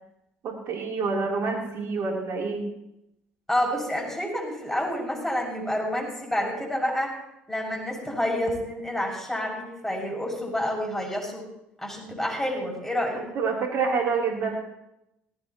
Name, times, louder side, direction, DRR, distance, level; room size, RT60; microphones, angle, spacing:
voice 1, 0.4-2.6 13.4-14.6, right 4 dB, 60° right, -1 dB, 3.6 m, -27 dB
voice 2, 3.5-7.1 7.5-11.4 11.8-13.2, left 1 dB, 5° left, -1 dB, 6.7 m, -28 dB
18.5 x 17.0 x 3.1 m, 0.83 s
hypercardioid pair, 60°, 5 cm